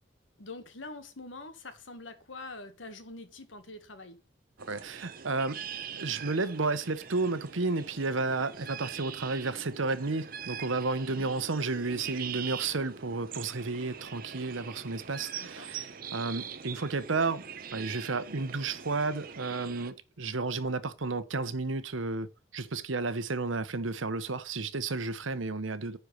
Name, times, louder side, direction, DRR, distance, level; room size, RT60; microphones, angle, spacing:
voice 1, 0.4-4.2 11.1-11.4 15.4-15.7, left 2 dB, 80° left, 1.7 m, -45 dB
sound 1, 4.6-19.9, right 7 dB, 45° right, 0.8 m, -43 dB
voice 2, 4.7-5.6 6.0-17.4 17.7-26.0, right 3 dB, 90° right, 1.0 m, -32 dB
10.0 x 4.6 x 6.6 m
head